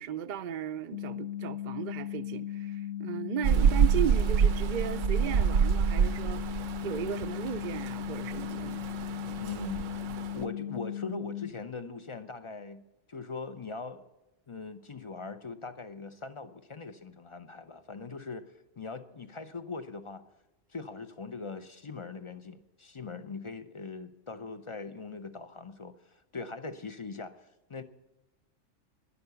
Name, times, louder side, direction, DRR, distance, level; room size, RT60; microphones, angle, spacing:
voice 1, 0.0-8.9, right 9 dB, 55° right, 0.5 m, -36 dB
sound 1, 0.9-11.5, left 11 dB, 90° left, 1.0 m, -37 dB
Rain, 3.4-10.4, right 7 dB, 85° right, 1.0 m, -28 dB
voice 2, 9.4-10.1 10.3-12.8 13.1-14.0 14.5-20.2 20.7-27.8, left 4 dB, 40° left, 0.4 m, -41 dB
11.0 x 10.5 x 6.8 m
omnidirectional pair, 1.3 m